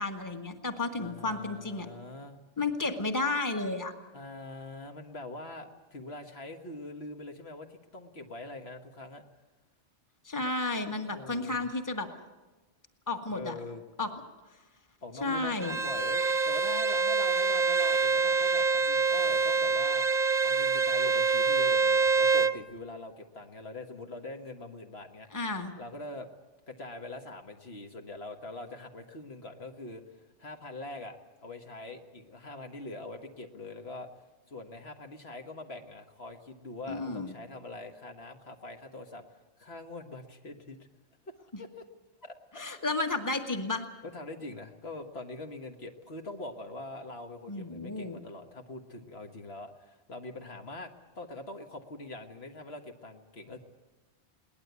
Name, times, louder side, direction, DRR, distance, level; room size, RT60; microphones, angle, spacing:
voice 1, 0.0-1.9 2.6-3.9 10.2-12.1 13.1-13.5 14.0-14.1 15.2-15.8 25.3-25.7 36.9-37.3 42.5-43.8 47.5-48.2, left 3 dB, 15° left, 6 dB, 1.6 m, -32 dB
voice 2, 0.9-2.4 4.1-9.2 11.0-11.7 13.3-13.8 15.0-20.1 20.4-25.4 25.8-26.3 26.7-34.1 34.5-40.8 41.2-41.9 42.2-42.6 44.0-53.6, left 2 dB, 65° left, 4 dB, 1.8 m, -43 dB
Bowed string instrument, 15.6-22.6, right 4 dB, 45° right, 0.9 m, -26 dB
22.0 x 19.0 x 8.2 m, 1.2 s
omnidirectional pair, 1.2 m